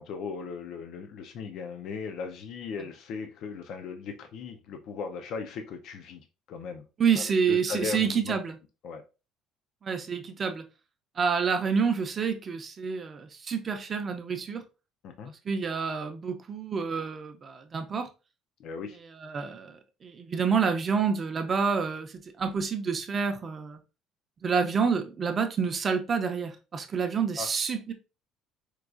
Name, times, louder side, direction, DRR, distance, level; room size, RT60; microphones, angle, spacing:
voice 1, 0.0-6.2 6.5-6.8 7.2-8.4 8.8-9.0 15.0-15.3 18.6-19.0 27.4-27.5, left 5 dB, 55° left, 0.4 m, -37 dB
voice 2, 7.0-8.6 9.8-10.6 11.2-14.6 15.5-18.1 19.2-22.1 22.4-23.8 24.4-27.9, right 6 dB, 25° right, 0.4 m, -28 dB
4.5 x 2.3 x 2.4 m
cardioid pair, 165°, 0 cm